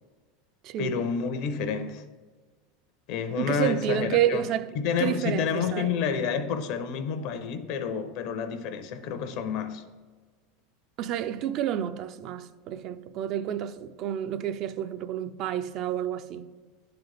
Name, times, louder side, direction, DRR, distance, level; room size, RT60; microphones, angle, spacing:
voice 1, 0.8-2.0 3.1-4.5 4.7-9.8, left 6 dB, 60° left, 0.6 m, -29 dB
voice 2, 3.4-4.7 5.0-5.9 11.0-16.5, right 11 dB, 50° right, 0.3 m, -29 dB
10.5 x 3.9 x 3.3 m
supercardioid pair, 110°, 0 cm